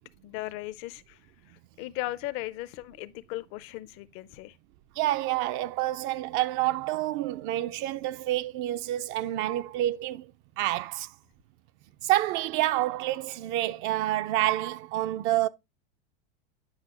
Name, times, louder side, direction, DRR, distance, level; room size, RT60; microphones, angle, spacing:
voice 1, 0.2-4.6, left 17 dB, 45° left, 0.6 m, -37 dB
voice 2, 5.0-10.3 10.6-11.1 12.0-15.5, right 15 dB, 40° right, 0.4 m, -28 dB
9.6 x 5.4 x 2.9 m
supercardioid pair, 130°, 30 cm